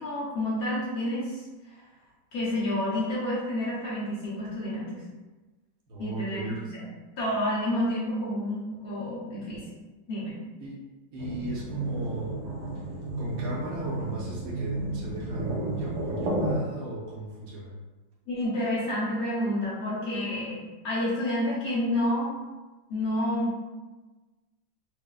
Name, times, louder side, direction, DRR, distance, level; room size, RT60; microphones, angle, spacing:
voice 1, 0.0-1.4 2.3-5.0 6.0-6.8 7.2-9.6 10.1-10.4 18.3-20.6 20.8-22.4 22.9-23.6, left 1 dB, 60° left, -8 dB, 1.2 m, -29 dB
voice 2, 5.9-6.6 10.6-10.8 11.1-12.4 13.2-17.7, right 2 dB, 65° right, -6 dB, 1.0 m, -37 dB
sound 1, 11.2-16.5, right 2 dB, 80° right, 1.3 m, -32 dB
4.7 x 2.1 x 2.3 m, 1.2 s
omnidirectional pair, 1.9 m